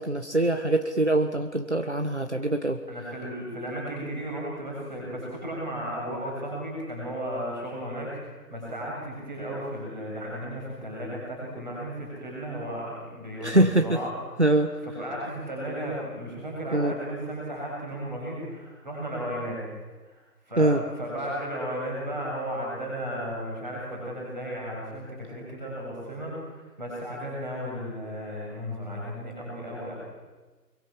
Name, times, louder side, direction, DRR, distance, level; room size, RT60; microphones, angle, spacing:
voice 1, 0.0-2.8 13.4-14.0 14.4-14.7 16.7-16.9 20.6-20.8, right 2 dB, 45° right, 6 dB, 1.4 m, -23 dB
voice 2, 2.9-14.1 14.5-19.6 20.1-20.2 20.4-29.9, equal, ahead, -21 dB, 3.3 m, -34 dB
26.0 x 23.5 x 7.4 m, 1.3 s
figure-of-eight pair, 170°, 49 cm